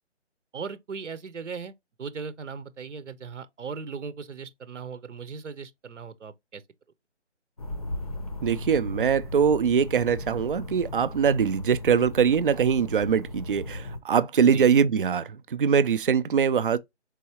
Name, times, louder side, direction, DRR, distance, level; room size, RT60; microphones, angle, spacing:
voice 1, 0.5-1.7 2.0-6.6 14.5-14.7, right 5 dB, 80° right, 0.9 m, -38 dB
sound 1, 7.6-14.0, left 2 dB, 30° left, 0.5 m, -37 dB
voice 2, 8.4-16.8, right 7 dB, 50° right, 0.4 m, -22 dB
4.7 x 4.1 x 2.8 m
hypercardioid pair, 160°, 36 cm